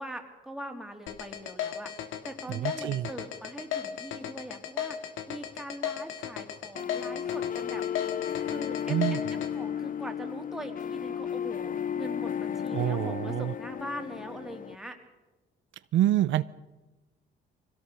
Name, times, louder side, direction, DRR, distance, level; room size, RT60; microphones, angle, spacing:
voice 1, 0.0-1.9 2.2-7.8 8.5-9.2 9.5-15.0, right 1 dB, ahead, 3 dB, 3.2 m, -42 dB
sound 1, 1.1-9.5, left 9 dB, 90° left, 2.0 m, -35 dB
voice 2, 2.5-3.1 8.9-9.2 12.7-13.5 15.9-16.4, right 12 dB, 75° right, 15 dB, 0.6 m, -26 dB
sound 2, 6.7-14.7, left 9 dB, 45° left, 0.7 m, -34 dB
22.5 x 17.0 x 6.9 m, 1.1 s
cardioid pair, 90°, 20 cm